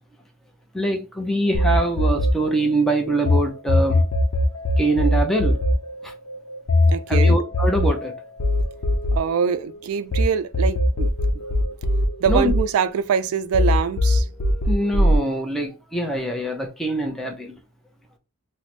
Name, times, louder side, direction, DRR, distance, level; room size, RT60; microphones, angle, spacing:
voice 1, 0.7-4.0 4.8-5.6 6.0-6.1 7.1-8.1 12.3-12.5 14.7-17.5, right 1 dB, ahead, 0.5 m, -23 dB
sound 1, 1.5-3.4 3.7-10.2 10.5-13.2 13.5-15.2, left 1 dB, 85° left, 0.6 m, -20 dB
voice 2, 6.9-7.4 9.1-11.1 12.2-14.3, right 7 dB, 75° right, 0.3 m, -24 dB
3.1 x 2.0 x 4.0 m
head